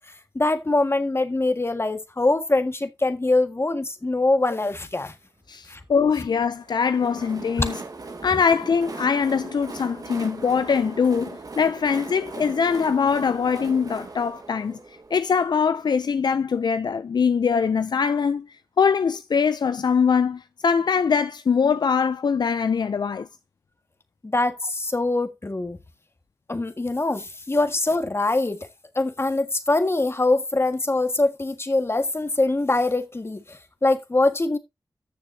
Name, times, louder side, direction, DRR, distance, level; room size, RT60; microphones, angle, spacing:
voice 1, 0.3-5.1 5.7-5.8 24.2-25.8 26.5-28.7 28.9-34.6, left 2 dB, 35° left, 1.7 m, -23 dB
voice 2, 5.5-7.8 8.2-14.8 15.1-18.5 18.8-23.3, left 6 dB, 75° left, 0.5 m, -22 dB
Train, 6.5-16.2, right 3 dB, 55° right, 1.6 m, -39 dB
14.0 x 6.9 x 2.8 m
cardioid pair, 55°, 7 cm